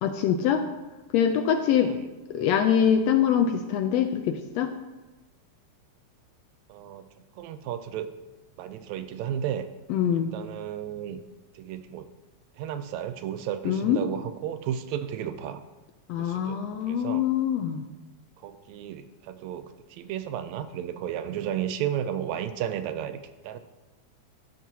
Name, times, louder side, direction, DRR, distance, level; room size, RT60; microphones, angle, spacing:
voice 1, 0.0-0.6 1.1-1.9 2.3-4.7 9.9-10.3 13.6-14.0 16.1-17.8, left 8 dB, 80° left, 7 dB, 1.6 m, -24 dB
voice 2, 6.7-7.1 7.4-8.1 8.6-9.7 10.1-11.2 11.6-12.1 12.6-15.6 16.2-16.6 16.9-17.3 18.4-23.6, right 10 dB, 80° right, 10 dB, 1.8 m, -33 dB
15.0 x 6.0 x 2.8 m, 1.1 s
omnidirectional pair, 3.3 m